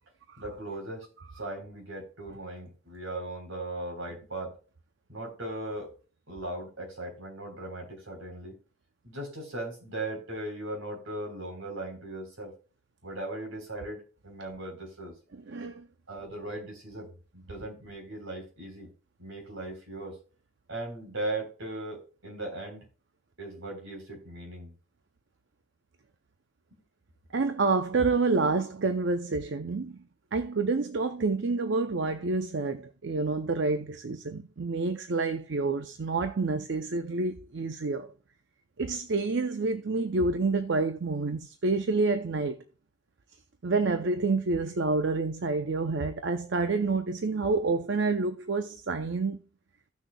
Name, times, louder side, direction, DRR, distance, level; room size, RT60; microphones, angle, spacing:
voice 1, 0.4-1.1 1.4-4.5 5.1-5.9 6.3-8.6 9.0-12.5 13.0-15.2 16.1-18.9 19.2-20.2 20.7-22.8 23.4-24.7 26.7-26.8, right 1 dB, 80° right, 3.8 m, -38 dB
voice 2, 15.3-15.9 27.3-30.0 30.3-38.1 38.8-42.6 43.6-49.4, right 3 dB, 60° right, 0.6 m, -28 dB
16.0 x 6.4 x 2.3 m
head